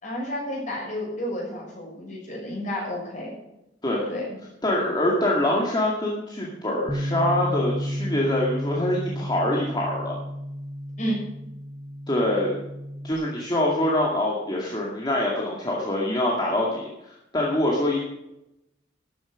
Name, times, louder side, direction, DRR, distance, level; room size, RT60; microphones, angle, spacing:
voice 1, 0.0-3.4 4.1-4.4 11.0-11.2, equal, 40° left, -2 dB, 6.2 m, -31 dB
voice 2, 4.6-10.2 12.1-12.5 13.0-18.0, left 1 dB, 25° left, -3 dB, 2.2 m, -25 dB
Bass guitar, 6.9-13.1, equal, 15° right, 0.9 m, -32 dB
13.0 x 9.1 x 6.4 m, 0.87 s
head